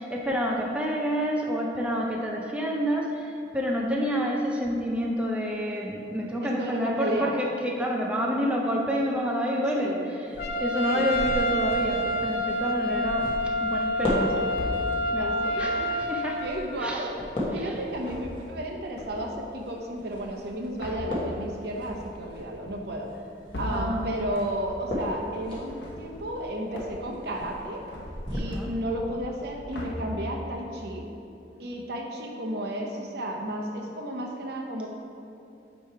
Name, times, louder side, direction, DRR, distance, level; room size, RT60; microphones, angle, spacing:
voice 1, 0.0-10.1 10.6-13.3 13.6-14.5 15.1-16.4 16.8-17.1 17.6-17.8 23.7-24.1 28.5-28.7, equal, 5° right, -2 dB, 0.4 m, -28 dB
voice 2, 6.4-7.3 9.8-10.1 10.9-11.1 12.8-12.9 15.2-15.9 16.4-17.1 17.5-23.1 23.6-27.8 28.3-31.1 31.6-34.9, right 1 dB, 65° right, 1 dB, 0.8 m, -33 dB
sound 1, 10.2-28.4, left 1 dB, 30° left, 1.2 m, -37 dB
Trumpet, 10.4-16.4, equal, 60° left, 0.5 m, -28 dB
sound 2, 12.0-12.4 13.2-13.8 14.5-15.3 17.8-18.7 19.0-19.5 20.3-24.9 25.2-26.5 26.7-27.2 27.5-29.1 29.4-30.5, left 1 dB, 80° left, 0.9 m, -40 dB
8.2 x 3.1 x 4.5 m, 2.7 s
head